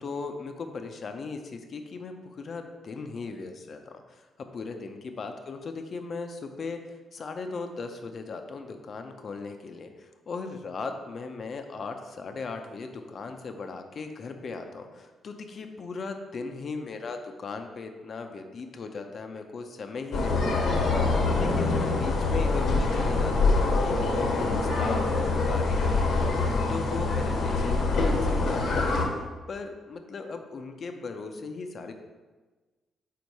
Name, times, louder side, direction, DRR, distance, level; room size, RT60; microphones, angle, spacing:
voice 1, 0.0-6.8 7.1-20.7 21.2-24.0 24.3-29.0 29.5-31.9, left 4 dB, 50° left, 6 dB, 0.7 m, -38 dB
sound 1, 20.1-29.1, left 3 dB, 70° left, 1.0 m, -25 dB
4.7 x 4.2 x 5.3 m, 1.3 s
cardioid pair, 90°, 0 cm